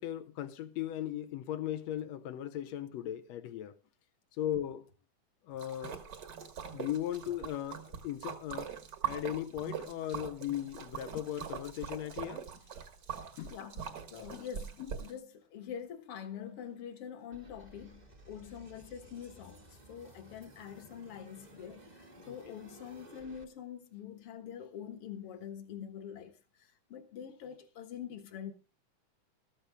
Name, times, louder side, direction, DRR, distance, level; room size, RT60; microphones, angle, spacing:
voice 1, 0.0-3.7 4.4-4.8 5.5-6.0 6.7-8.7 9.0-12.5 13.4-13.5 14.3-14.4 14.8-14.9 22.2-22.5, left 11 dB, 70° left, 1.8 m, -37 dB
Splash splatter, 5.6-15.1, right 8 dB, 50° right, 1.4 m, -42 dB
voice 2, 13.5-28.5, left 8 dB, 55° left, 2.0 m, -45 dB
sound 1, 17.3-23.4, right 1 dB, 30° right, 0.7 m, -56 dB
14.0 x 13.5 x 3.5 m
omnidirectional pair, 3.5 m